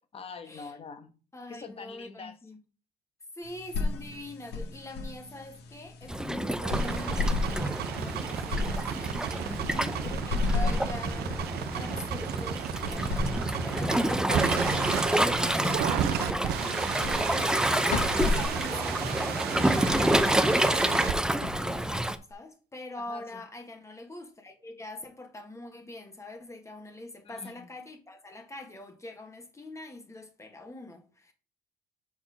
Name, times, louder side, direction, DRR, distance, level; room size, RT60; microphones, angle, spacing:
voice 1, 0.1-1.1 1.5-2.4 9.3-10.1 23.1-23.4 27.2-27.6, left 4 dB, 35° left, 1.2 m, -44 dB
voice 2, 1.3-2.6 3.3-9.5 10.0-13.2 13.7-17.5 17.8-31.3, left 2 dB, 15° left, 1.5 m, -44 dB
sound 1, 3.4-22.3, left 3 dB, 75° left, 1.7 m, -35 dB
Waves surf, 6.1-22.2, right 1 dB, 5° right, 0.6 m, -28 dB
sound 2, 6.6-21.1, right 10 dB, 70° right, 0.7 m, -34 dB
5.7 x 4.4 x 6.1 m
cardioid pair, 110°, 17 cm